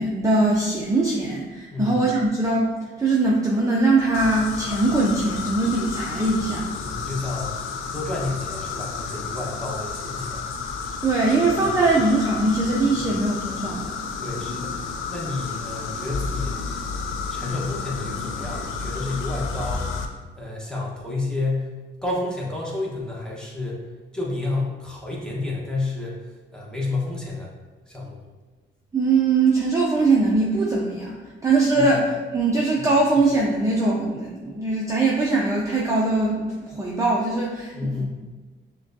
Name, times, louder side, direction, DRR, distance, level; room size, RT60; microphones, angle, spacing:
voice 1, 0.0-6.7 11.0-13.9 28.9-38.1, right 2 dB, 15° right, -4 dB, 0.5 m, -21 dB
voice 2, 1.7-2.0 6.8-10.5 13.0-13.1 14.2-16.7 17.3-20.0 20.4-21.7 22.0-23.8 24.1-26.2 26.5-27.5 27.9-28.2 31.7-31.9 37.7-38.1, left 2 dB, 5° left, -4 dB, 1.0 m, -30 dB
sound 1, 4.1-20.1, left 5 dB, 90° left, 0.4 m, -31 dB
5.8 x 2.3 x 2.6 m, 1.3 s
cardioid pair, 90°, 20 cm